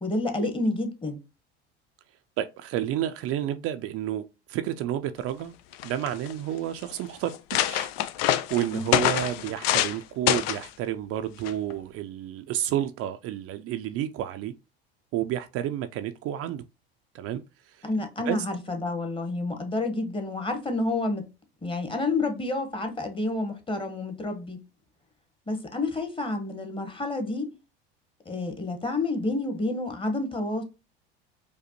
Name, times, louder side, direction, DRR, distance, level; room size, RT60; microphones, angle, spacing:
voice 1, 0.0-1.2 8.7-8.8 17.8-21.3 21.6-24.6 25.5-27.5 28.3-30.6, left 2 dB, 15° left, 1.0 m, -29 dB
voice 2, 2.4-5.5 5.8-7.3 7.6-7.9 8.2-14.5 15.1-16.6 17.1-17.9 18.2-18.4, right 11 dB, 50° right, 0.4 m, -30 dB
sound 1, 5.4-5.5 5.7-6.3 6.9-7.0 7.3-10.0 10.3-10.7 11.4-11.7, left 12 dB, 75° left, 0.5 m, -26 dB
5.1 x 2.1 x 2.9 m
hypercardioid pair, 90°, 31 cm